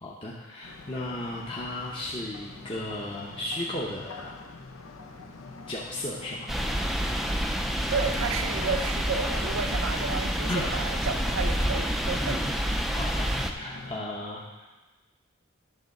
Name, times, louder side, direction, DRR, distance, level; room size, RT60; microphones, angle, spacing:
voice 1, 0.0-4.3 5.7-6.5 10.5-10.7 12.3-12.4 12.9-14.7, left 1 dB, 25° left, -4 dB, 0.7 m, -35 dB
sound 1, 0.6-14.0, left 3 dB, 85° left, 0.9 m, -44 dB
sound 2, 6.5-13.5, equal, ahead, 0.4 m, -28 dB
voice 2, 7.9-12.4, right 5 dB, 80° right, 7 dB, 0.6 m, -32 dB
10.5 x 3.9 x 6.4 m, 1.2 s
head